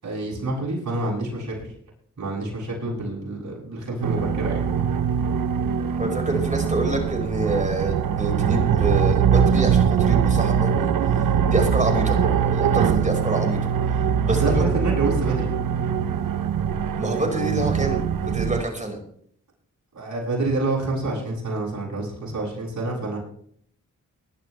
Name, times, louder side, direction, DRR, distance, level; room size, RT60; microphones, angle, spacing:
voice 1, 0.0-1.7 2.2-4.7 14.3-15.5 17.6-17.7 19.9-23.2, right 2 dB, 60° right, -4 dB, 7.9 m, -27 dB
sound 1, 4.0-18.6, right 7 dB, 80° right, 0.9 m, -22 dB
voice 2, 6.0-10.9 11.4-13.6 13.9-14.7 17.0-19.0, right 2 dB, 20° right, 2 dB, 5.5 m, -27 dB
22.5 x 12.0 x 3.4 m, 0.63 s
cardioid pair, 50°, 33 cm